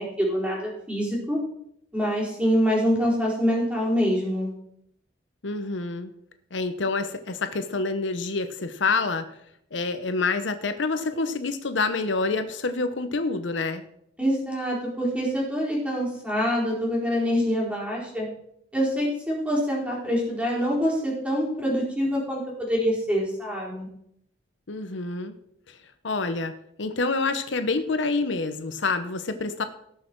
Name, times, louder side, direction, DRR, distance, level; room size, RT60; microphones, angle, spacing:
voice 1, 0.0-1.4 1.9-4.5 14.2-18.3 18.7-23.9, equal, 5° right, -4 dB, 4.2 m, -25 dB
voice 2, 5.4-6.1 6.5-9.3 9.7-13.8 24.7-25.3 25.7-25.8 26.0-26.5 26.8-29.6, left 3 dB, 75° left, 9 dB, 0.9 m, -27 dB
18.0 x 6.5 x 4.6 m, 0.73 s
head